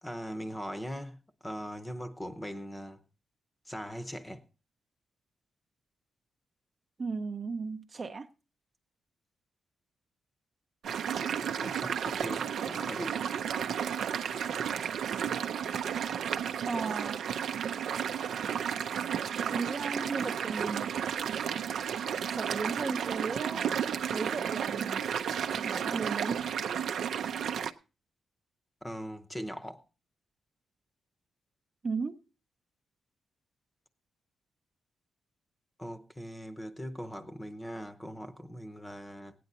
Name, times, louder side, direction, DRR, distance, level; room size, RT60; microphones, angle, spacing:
voice 1, 0.0-3.0 3.7-4.4 11.1-13.2 28.8-29.8 35.8-39.3, equal, 10° left, 0.8 m, -40 dB
voice 2, 7.0-8.3 16.7-17.2 19.4-21.0 22.3-23.8 24.1-25.0 25.5-26.4 31.8-32.2, right 4 dB, 35° right, 0.6 m, -35 dB
sound 1, 10.8-27.7, right 8 dB, 75° right, 0.5 m, -33 dB
17.0 x 9.3 x 4.1 m
wide cardioid pair, 135°, 0 cm